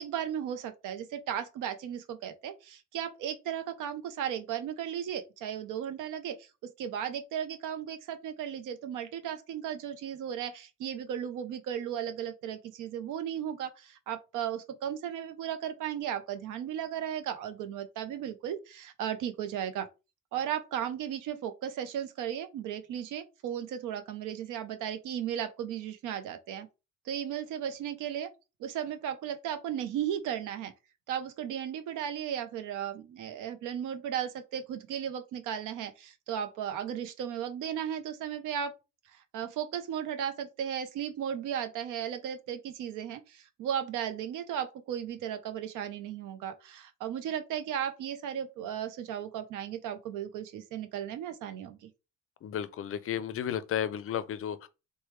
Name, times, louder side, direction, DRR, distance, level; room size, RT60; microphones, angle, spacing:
voice 1, 0.0-19.9 20.3-26.7 27.1-28.3 28.6-30.7 31.1-38.7 39.1-51.9, right 9 dB, 85° right, 0.5 m, -35 dB
voice 2, 52.4-54.7, left 10 dB, 50° left, 0.4 m, -33 dB
3.0 x 2.2 x 3.2 m
cardioid pair, 90°, 30 cm